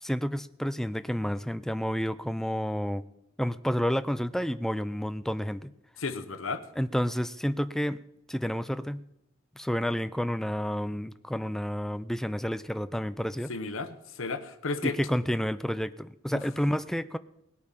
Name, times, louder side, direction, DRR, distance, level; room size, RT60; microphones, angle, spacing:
voice 1, 0.0-3.0 3.4-5.7 6.8-8.0 8.3-9.1 9.6-13.5 14.8-17.2, equal, ahead, 13 dB, 0.4 m, -30 dB
voice 2, 6.0-6.6 13.5-13.9 14.2-14.9, left 3 dB, 85° left, 10 dB, 1.0 m, -32 dB
18.5 x 8.6 x 5.7 m, 0.82 s
head